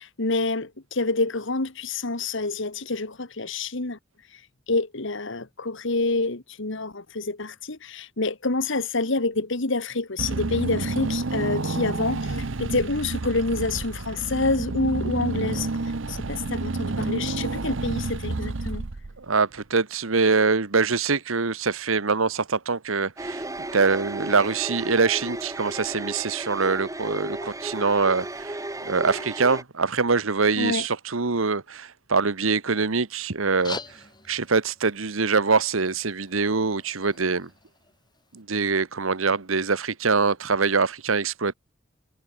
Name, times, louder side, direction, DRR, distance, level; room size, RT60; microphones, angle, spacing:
voice 1, 0.0-4.0 4.7-15.7 16.1-18.8 30.6-30.9, left 3 dB, 65° left, 2.0 m, -27 dB
Car / Engine, 10.2-19.4, right 3 dB, 70° right, 0.9 m, -29 dB
voice 2, 19.2-23.4 23.7-33.8 34.3-37.5 38.3-41.5, right 4 dB, 85° right, 1.3 m, -24 dB
sound 1, 23.2-29.6, right 2 dB, 15° right, 2.7 m, -34 dB
sound 2, 33.4-38.4, left 4 dB, 20° left, 3.2 m, -44 dB
head